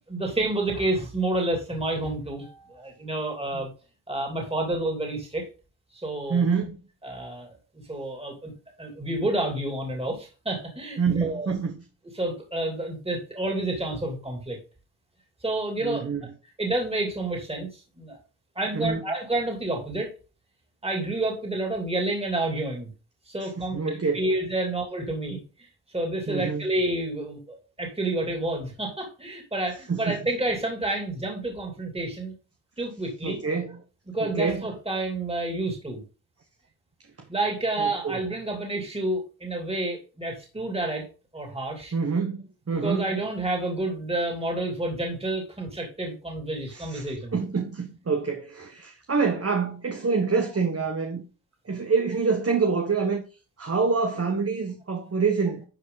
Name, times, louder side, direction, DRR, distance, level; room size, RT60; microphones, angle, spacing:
voice 1, 0.1-3.7 4.1-5.5 5.9-6.5 7.0-7.6 7.9-8.5 8.8-11.5 12.1-14.6 15.4-16.1 16.6-18.2 18.5-20.1 20.8-22.9 23.3-32.3 32.8-33.4 34.1-36.0 37.3-41.1 41.3-41.9 42.7-47.4, right 2 dB, 15° right, 3.0 m, -29 dB
voice 2, 6.3-6.8 11.0-11.8 15.8-16.2 18.7-19.0 23.4-24.3 26.3-26.6 29.9-30.2 33.2-33.8 34.2-34.6 37.8-38.2 41.9-43.1 46.7-51.2 51.6-53.2 53.6-55.6, right 5 dB, 35° right, 1.4 m, -26 dB
11.5 x 5.3 x 4.0 m
cardioid pair, 85°, 42 cm